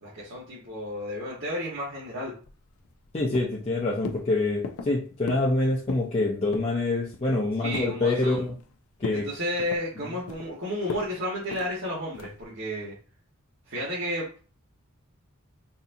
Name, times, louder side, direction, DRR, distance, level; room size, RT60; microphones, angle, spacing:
voice 1, 0.0-2.3 7.6-8.4 9.1-12.9 13.7-14.3, left 1 dB, 60° right, -8 dB, 1.2 m, -32 dB
sound 1, 2.4-3.1 3.3-3.7 4.1-4.3 4.6-4.9 5.3-5.5 5.8-6.1 6.5-6.8 7.1-8.0 8.4-8.7 9.0-9.3 9.6-10.5 10.9-11.1 11.5-11.7 12.2-12.4, left 4 dB, 80° left, 0.4 m, -37 dB
voice 2, 3.1-8.5 9.0-9.3, left 2 dB, 30° left, -4 dB, 0.6 m, -26 dB
4.1 x 2.6 x 2.6 m, 0.38 s
head